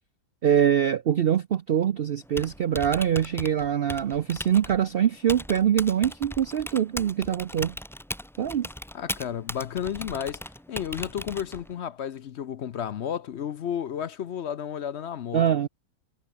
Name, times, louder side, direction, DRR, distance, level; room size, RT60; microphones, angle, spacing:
voice 1, 0.4-7.8 8.4-8.7 15.3-15.7, right 9 dB, 60° right, 0.6 m, -24 dB
Typing, 2.2-11.8, equal, ahead, 0.7 m, -39 dB
voice 2, 8.9-10.4 10.7-15.5, left 9 dB, 55° left, 0.8 m, -32 dB
omnidirectional pair, 1.6 m